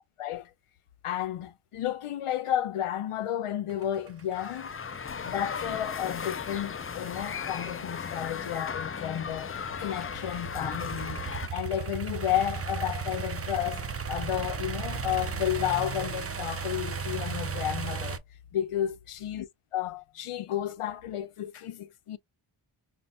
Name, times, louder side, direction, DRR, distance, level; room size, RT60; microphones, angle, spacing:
voice 1, 0.2-0.5 1.0-4.7 5.2-11.2 11.5-18.2 18.5-22.2, left 11 dB, 85° left, 0.7 m, -32 dB
sound 1, 3.7-18.2, right 5 dB, 30° right, 0.6 m, -36 dB
sound 2, 4.3-11.5, left 6 dB, 30° left, 0.4 m, -36 dB
5.2 x 2.2 x 2.4 m
wide cardioid pair, 70°, 50 cm